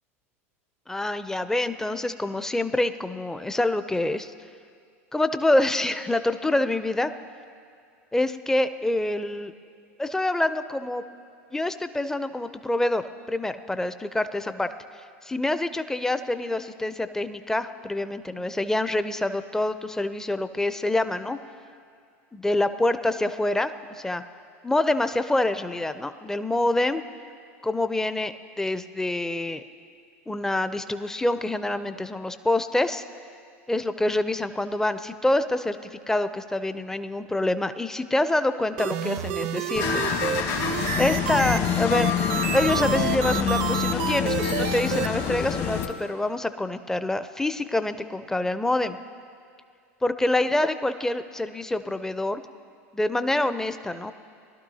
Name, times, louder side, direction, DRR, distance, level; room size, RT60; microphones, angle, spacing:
voice 1, 0.9-4.3 5.1-7.1 8.1-9.5 10.0-11.0 11.5-14.7 15.2-21.4 22.3-24.2 24.6-27.0 27.6-29.6 30.3-33.0 33.7-40.0 41.0-42.1 42.5-49.0 50.0-52.4 52.9-54.1, left 1 dB, 5° left, 11 dB, 0.5 m, -26 dB
sound 1, 38.8-45.1, right 10 dB, 65° right, 0.7 m, -29 dB
sound 2, 39.8-45.9, left 8 dB, 55° left, 1.4 m, -26 dB
20.5 x 12.0 x 2.8 m, 2.3 s
hypercardioid pair, 90°, 8 cm